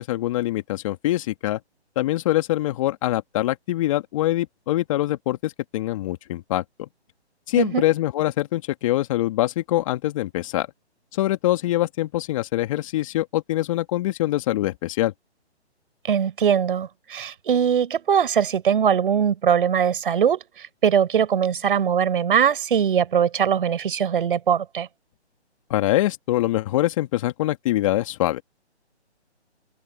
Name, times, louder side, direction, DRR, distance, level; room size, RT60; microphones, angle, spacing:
voice 1, 0.0-1.6 2.0-6.9 7.5-10.7 11.1-15.1 25.7-28.4, left 15 dB, 30° left, 2.2 m, -24 dB
voice 2, 16.0-24.9, right 8 dB, 50° right, 6.2 m, -21 dB
figure-of-eight pair, 145°, 34 cm